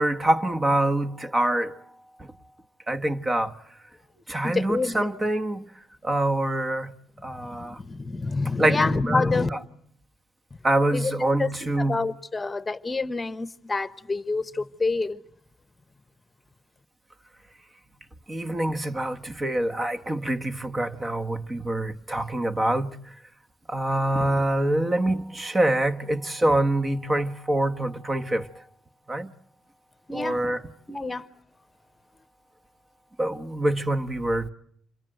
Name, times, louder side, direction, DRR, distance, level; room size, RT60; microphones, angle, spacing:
voice 1, 0.0-1.8 2.9-3.5 4.3-5.7 6.0-6.9 7.2-7.8 8.6-8.8 9.1-9.6 10.6-12.0 18.3-23.0 23.7-28.5 29.1-29.3 30.1-30.6 33.2-34.5, right 1 dB, 25° right, 1.3 m, -25 dB
voice 2, 4.4-5.1 7.4-9.5 10.9-11.1 11.4-15.2 30.1-30.4 30.9-31.3, left 3 dB, 25° left, 1.1 m, -27 dB
27.5 x 22.5 x 7.8 m
cardioid pair, 90°, 0 cm